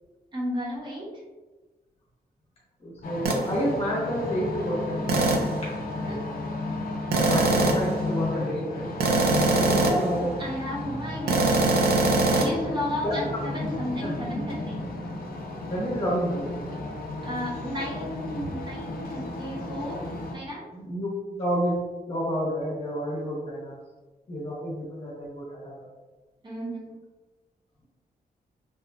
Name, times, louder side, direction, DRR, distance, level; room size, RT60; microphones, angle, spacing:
voice 1, 0.3-1.1 6.1-6.2 9.8-14.8 17.2-20.0 20.3-20.7 26.4-27.0, equal, 30° right, -4 dB, 0.7 m, -33 dB
voice 2, 2.8-5.0 5.6-5.7 7.3-8.9 9.4-10.3 13.0-13.1 14.0-14.1 15.7-16.5 20.7-21.8 22.1-23.8 24.3-25.9, equal, 40° left, -7 dB, 0.8 m, -29 dB
sound 1, 3.0-20.4, left 2 dB, 65° left, 0.4 m, -33 dB
sound 2, 3.2-3.5 5.1-5.6 7.1-7.9 9.0-10.1 11.3-12.5, right 3 dB, 75° right, 0.4 m, -22 dB
2.8 x 2.3 x 2.2 m, 1.2 s
wide cardioid pair, 175°, 16 cm